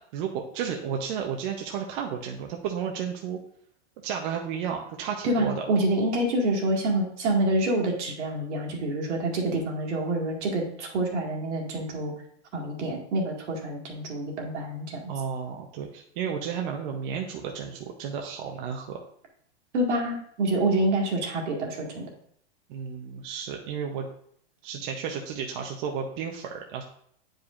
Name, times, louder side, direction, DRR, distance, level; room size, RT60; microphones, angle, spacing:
voice 1, 0.1-3.4 4.0-5.7 15.1-19.0 22.7-24.1 24.6-26.8, right 7 dB, 45° right, 2 dB, 0.7 m, -32 dB
voice 2, 5.2-12.1 12.5-15.0 19.7-22.1, right 1 dB, 75° right, 0 dB, 2.0 m, -27 dB
9.0 x 5.0 x 2.5 m, 0.65 s
hypercardioid pair, 140°, 35 cm